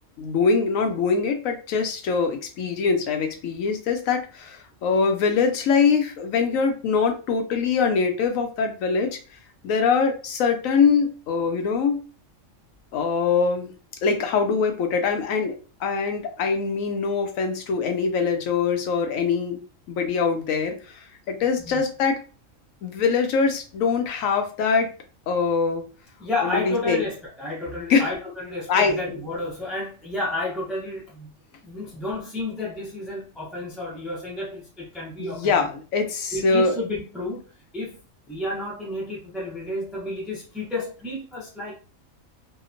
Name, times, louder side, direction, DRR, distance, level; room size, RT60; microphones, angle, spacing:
voice 1, 0.2-9.2 9.6-12.0 12.9-13.7 14.0-19.6 19.9-22.2 22.8-24.9 25.3-25.8 26.4-27.0 27.9-28.1 28.7-29.2 35.2-36.7, left 5 dB, 80° left, 6 dB, 1.0 m, -23 dB
voice 2, 26.2-31.3 31.6-35.5 36.3-37.4 37.7-38.0 38.3-41.8, left 2 dB, ahead, -6 dB, 0.4 m, -31 dB
2.8 x 2.0 x 2.5 m, 0.36 s
omnidirectional pair, 1.4 m